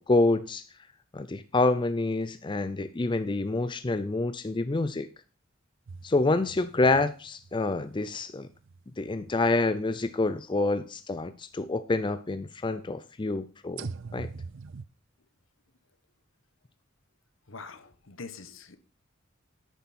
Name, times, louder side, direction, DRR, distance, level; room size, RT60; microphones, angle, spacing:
voice 1, 0.1-0.6 1.1-5.1 6.0-8.5 9.0-14.3, left 2 dB, 25° left, 12 dB, 0.5 m, -27 dB
sound 1, 5.9-10.1 10.8-10.9 13.8-14.9, right 4 dB, 65° right, 0.5 m, -44 dB
voice 2, 17.5-18.8, left 4 dB, 75° left, 12 dB, 1.2 m, -44 dB
10.5 x 9.2 x 4.3 m, 0.36 s
head